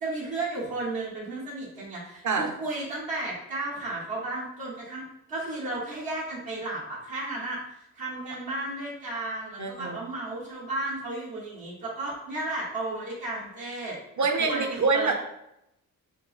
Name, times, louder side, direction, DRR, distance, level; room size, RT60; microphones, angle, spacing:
voice 1, 0.0-5.0 5.3-7.6 8.0-14.0 14.4-15.1, right 2 dB, 80° right, -6 dB, 1.3 m, -33 dB
voice 2, 9.6-10.0 14.2-15.1, right 4 dB, 55° right, 4 dB, 0.7 m, -25 dB
4.9 x 2.1 x 3.2 m, 0.82 s
cardioid pair, 60°, 35 cm